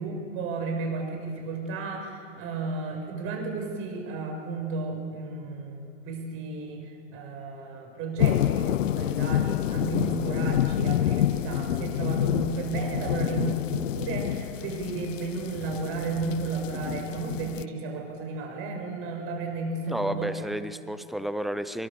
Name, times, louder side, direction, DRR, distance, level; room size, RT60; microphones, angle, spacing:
voice 1, 0.0-20.3, right 3 dB, 35° right, 2 dB, 6.6 m, -33 dB
sound 1, 8.2-17.6, left 12 dB, 85° left, 0.6 m, -28 dB
voice 2, 19.9-21.9, equal, ahead, 12 dB, 0.6 m, -31 dB
25.0 x 23.0 x 7.0 m, 2.3 s
hypercardioid pair, 125°, 37 cm